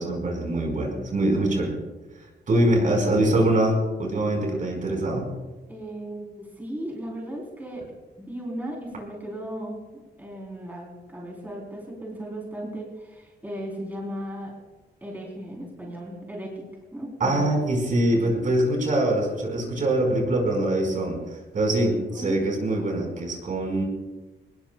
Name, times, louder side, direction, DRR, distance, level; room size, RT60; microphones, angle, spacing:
voice 1, 0.0-1.7 2.5-5.3 17.2-21.2 21.5-23.8, right 1 dB, 45° right, 1 dB, 4.8 m, -23 dB
voice 2, 3.2-3.5 5.7-7.8 8.2-9.8 10.2-14.5 15.0-16.7 16.9-17.6 22.1-22.4, right 1 dB, 10° right, -3 dB, 3.7 m, -36 dB
26.0 x 19.5 x 2.3 m, 1.2 s
wide cardioid pair, 155°, 19 cm